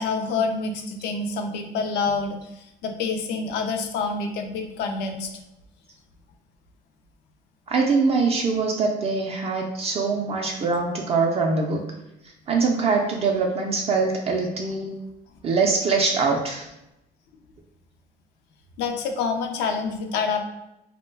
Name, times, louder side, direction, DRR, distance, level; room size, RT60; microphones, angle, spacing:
voice 1, 0.0-5.4 18.8-20.4, left 4 dB, 85° left, 5 dB, 0.4 m, -27 dB
voice 2, 7.7-11.8 12.5-14.9 15.4-16.7, right 4 dB, 35° right, 1 dB, 0.4 m, -23 dB
2.2 x 2.1 x 3.2 m, 0.89 s
cardioid pair, 110°, 17 cm